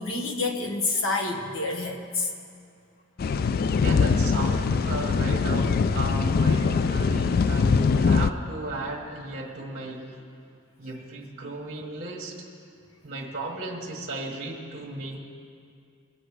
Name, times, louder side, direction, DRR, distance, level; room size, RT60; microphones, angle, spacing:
voice 1, 0.0-2.3, left 3 dB, 70° left, 3 dB, 1.5 m, -28 dB
sound 1, 3.2-8.3, left 5 dB, 45° left, 0.3 m, -22 dB
voice 2, 3.8-10.2 10.8-12.4 13.0-15.2, right 2 dB, 40° right, -2 dB, 1.5 m, -35 dB
22.0 x 7.9 x 4.9 m, 2.3 s
head